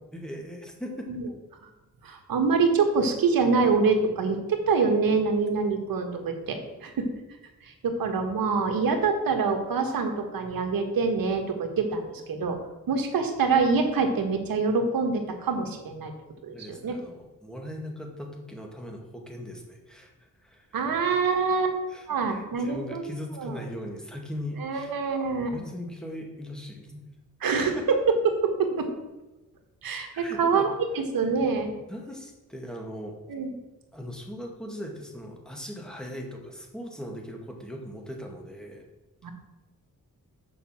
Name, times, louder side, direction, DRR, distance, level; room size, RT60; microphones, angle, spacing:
voice 1, 0.1-1.1 16.5-20.1 20.4-20.8 21.9-25.0 25.5-27.0 27.8-27.9 30.1-30.8 31.9-33.1 33.9-38.8, equal, ahead, 1 dB, 1.8 m, -39 dB
voice 2, 2.0-7.1 7.6-12.6 12.9-16.1 16.4-17.0 20.7-21.7 22.1-23.0 23.3-23.6 24.6-25.6 27.4-28.0 28.2-28.9 29.8-31.7 33.3-33.5 39.2-39.3, right 4 dB, 85° right, 4 dB, 1.5 m, -25 dB
7.1 x 5.5 x 7.3 m, 1.0 s
cardioid pair, 100°, 34 cm